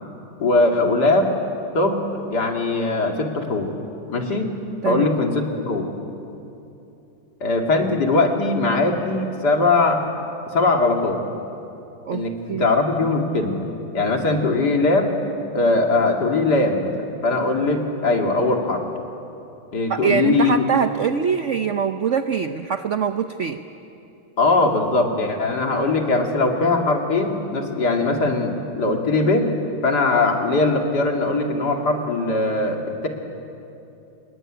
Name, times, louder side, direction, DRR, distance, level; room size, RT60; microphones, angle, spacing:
voice 1, 0.4-1.3 1.7-3.7 4.1-4.5 4.8-5.8 7.4-10.1 10.5-11.2 12.1-13.6 13.9-15.1 15.5-18.8 19.7-20.6 24.4-29.5 29.8-33.1, left 3 dB, 50° left, 3 dB, 2.9 m, -20 dB
voice 2, 4.8-5.2 12.1-12.7 19.9-23.6, right 7 dB, 70° right, 9 dB, 0.7 m, -23 dB
26.0 x 22.0 x 10.0 m, 2.8 s
omnidirectional pair, 2.2 m